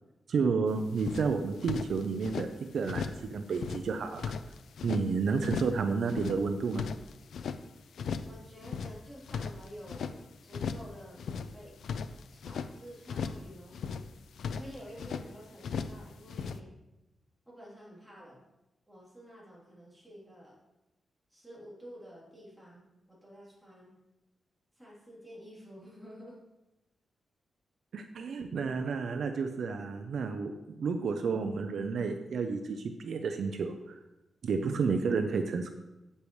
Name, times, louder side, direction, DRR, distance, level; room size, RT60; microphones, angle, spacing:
voice 1, 0.3-2.5 2.7-4.3 4.8-6.9 27.9-34.0 34.4-35.7, right 5 dB, 65° right, 6 dB, 0.6 m, -31 dB
sound 1, 0.7-0.8 1.0-2.5 2.8-3.3 3.5-5.0 5.4-5.8 6.1-7.6 8.0-8.4 8.6-10.2 10.5-10.9 11.2-12.7 13.1-13.5 13.7-15.3 15.6-16.0 16.3-16.6, left 6 dB, 80° left, 0.4 m, -37 dB
voice 2, 8.3-11.8 12.3-14.0 14.4-16.7 17.4-18.4 18.9-20.6 21.3-23.9 24.7-26.4, equal, ahead, -7 dB, 3.3 m, -50 dB
8.5 x 8.3 x 3.2 m, 0.96 s
wide cardioid pair, 155°, 0 cm